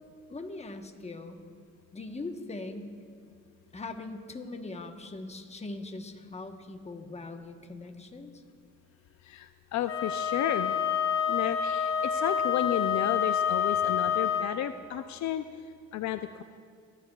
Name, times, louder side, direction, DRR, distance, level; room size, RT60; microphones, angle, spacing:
voice 1, 0.3-1.4 1.9-2.9 3.7-8.4, left 2 dB, 20° left, 5 dB, 1.0 m, -41 dB
voice 2, 9.3-10.8 11.3-15.4 15.9-16.4, left 11 dB, 70° left, 10 dB, 0.5 m, -32 dB
Wind instrument woodwind instrument, 9.9-14.6, left 7 dB, 45° left, 0.9 m, -28 dB
23.0 x 9.7 x 2.3 m, 2.2 s
cardioid pair, 90°, 30 cm